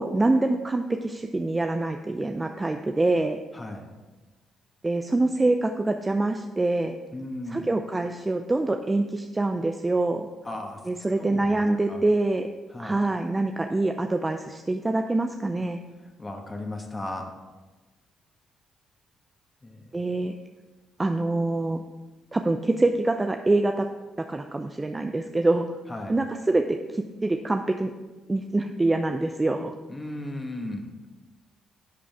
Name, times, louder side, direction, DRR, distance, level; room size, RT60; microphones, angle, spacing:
voice 1, 0.0-3.4 4.8-7.0 7.5-10.3 10.9-12.5 12.8-15.8 19.9-20.3 21.0-21.8 22.3-23.9 24.3-25.6 26.1-27.9 28.3-29.7, right 2 dB, 25° right, 6 dB, 0.6 m, -25 dB
voice 2, 3.5-3.9 7.1-7.7 10.4-11.6 11.9-12.0 12.7-13.0 16.0-17.3 19.6-19.8 25.9-26.2 29.9-30.9, left 1 dB, 25° left, 2 dB, 1.7 m, -36 dB
11.0 x 8.5 x 3.6 m, 1.2 s
hypercardioid pair, 45°, 0 cm